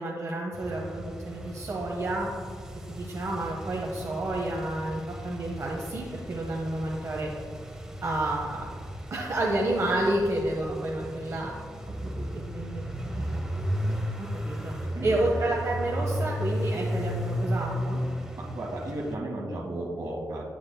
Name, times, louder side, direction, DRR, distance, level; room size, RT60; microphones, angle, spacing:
voice 1, 0.0-2.3 2.9-7.3 8.0-8.7 9.1-11.5 12.5-12.9 13.1-13.4 14.2-14.8 15.0-18.0, right 1 dB, 50° right, -2 dB, 0.8 m, -30 dB
sound 1, 0.5-19.2, equal, 10° right, 0.7 m, -35 dB
voice 2, 18.3-20.5, right 1 dB, 70° right, -2 dB, 1.4 m, -34 dB
8.6 x 7.2 x 2.2 m, 2.1 s
wide cardioid pair, 105°, 6 cm